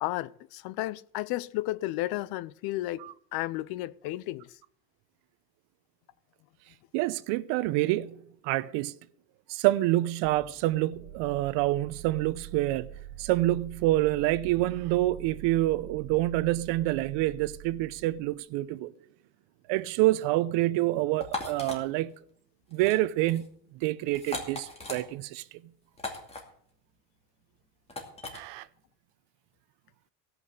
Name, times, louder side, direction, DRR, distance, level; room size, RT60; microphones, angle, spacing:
voice 1, 0.0-4.6, left 17 dB, 50° left, 0.6 m, -33 dB
voice 2, 6.9-8.9 9.5-12.9 13.2-18.9 19.7-22.1 22.7-23.5 23.7-25.4 28.3-28.7, right 16 dB, 60° right, 0.8 m, -27 dB
sound 1, 10.2-18.4, right 12 dB, 5° right, 3.5 m, -46 dB
sound 2, 21.2-21.8 22.7-23.0 23.2-23.5 24.1-25.0 26.0-26.4 27.9-28.4, left 2 dB, 15° left, 2.5 m, -37 dB
17.0 x 6.1 x 7.9 m
cardioid pair, 145°, 48 cm